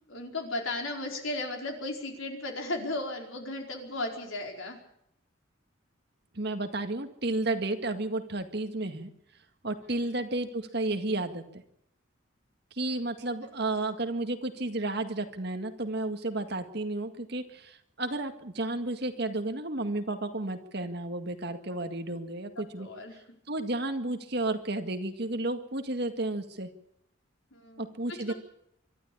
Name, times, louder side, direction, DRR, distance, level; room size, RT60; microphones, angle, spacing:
voice 1, 0.1-4.8 10.0-10.2 22.6-23.2 27.5-28.3, left 2 dB, 85° left, 2 dB, 4.7 m, -36 dB
voice 2, 6.3-9.1 9.6-11.6 12.8-22.9 23.5-26.7 27.8-28.3, right 2 dB, 55° right, 6 dB, 1.9 m, -32 dB
24.5 x 12.5 x 8.6 m, 0.76 s
head